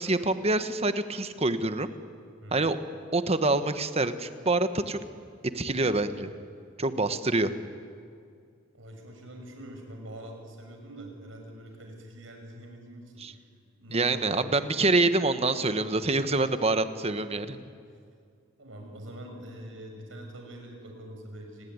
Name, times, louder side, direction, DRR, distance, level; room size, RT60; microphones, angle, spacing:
voice 1, 0.0-1.9 2.5-2.8 3.1-5.0 5.5-6.3 6.8-7.5 13.2-13.3 13.9-17.6, right 2 dB, 30° right, 10 dB, 1.2 m, -26 dB
voice 2, 8.7-13.4 13.8-14.5 17.3-17.6 18.6-21.7, right 1 dB, 75° right, 3 dB, 6.4 m, -44 dB
28.5 x 20.0 x 9.6 m, 2.3 s
head